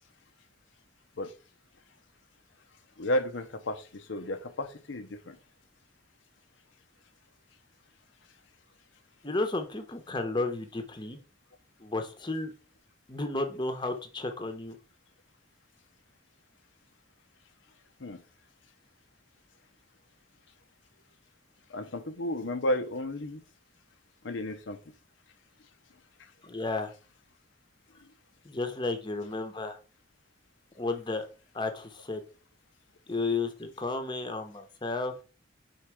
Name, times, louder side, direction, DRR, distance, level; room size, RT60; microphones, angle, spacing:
voice 1, 3.0-5.4 18.0-18.2 21.7-23.4 24.2-24.8, left 1 dB, 75° left, 8 dB, 0.7 m, -32 dB
voice 2, 9.2-11.2 11.8-12.5 13.1-14.8 26.4-26.9 28.4-29.8 30.8-31.2 31.5-32.2 33.1-35.2, left 3 dB, 25° left, 6 dB, 0.9 m, -32 dB
4.7 x 4.5 x 4.8 m, 0.35 s
head